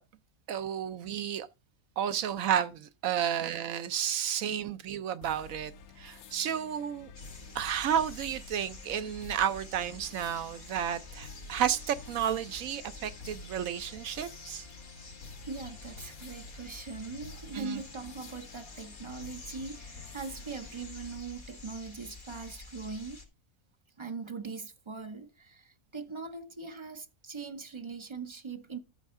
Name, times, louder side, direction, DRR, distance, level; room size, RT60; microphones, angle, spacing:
voice 1, 0.5-1.5 2.0-5.7 6.0-7.1 7.5-14.7 17.5-17.8, right 9 dB, 70° right, 1.1 m, -32 dB
sound 1, 5.2-21.2, left 4 dB, 80° left, 1.2 m, -50 dB
sound 2, 7.1-23.2, left 3 dB, 35° left, 1.8 m, -49 dB
voice 2, 15.5-23.2 24.0-28.8, right 4 dB, 35° right, 0.4 m, -41 dB
13.5 x 5.2 x 3.6 m
omnidirectional pair, 1.5 m